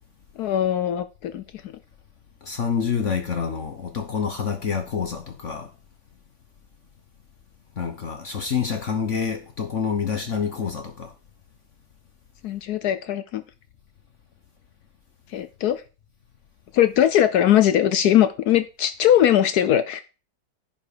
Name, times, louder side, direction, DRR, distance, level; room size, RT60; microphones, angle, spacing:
voice 1, 0.4-1.4 12.4-13.4 15.3-15.8 16.7-20.0, left 11 dB, 80° left, 0.8 m, -20 dB
voice 2, 2.4-5.7 7.8-11.1, left 6 dB, 50° left, 0.9 m, -27 dB
10.5 x 5.2 x 4.9 m
omnidirectional pair, 2.4 m